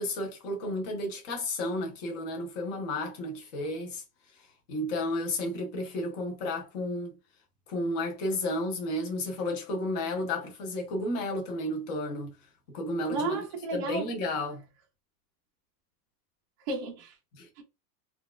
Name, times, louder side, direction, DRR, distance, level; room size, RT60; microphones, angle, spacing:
voice 1, 0.0-4.0 4.7-7.1 7.7-12.4 12.7-13.4 13.7-14.7 17.3-17.5, left 1 dB, 25° left, 0.5 m, -32 dB
voice 2, 13.1-14.1 16.7-17.2 17.6-17.7, right 3 dB, 30° right, 0.4 m, -33 dB
4.0 x 2.3 x 2.2 m
supercardioid pair, 180°, 49 cm